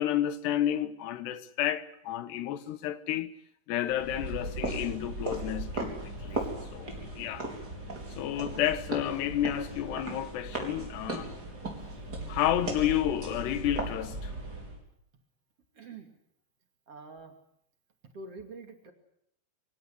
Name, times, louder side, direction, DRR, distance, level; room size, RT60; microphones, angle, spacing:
voice 1, 0.0-3.3 3.7-6.5 6.7-7.5 8.2-11.3 12.3-14.3, left 11 dB, 90° left, 3.4 m, -31 dB
sound 1, 3.9-14.8, right 2 dB, 25° right, 4.8 m, -37 dB
voice 2, 6.2-6.5 15.7-16.1 16.9-17.3 18.1-18.9, right 3 dB, 40° right, 3.0 m, -46 dB
25.5 x 16.5 x 9.8 m
omnidirectional pair, 4.7 m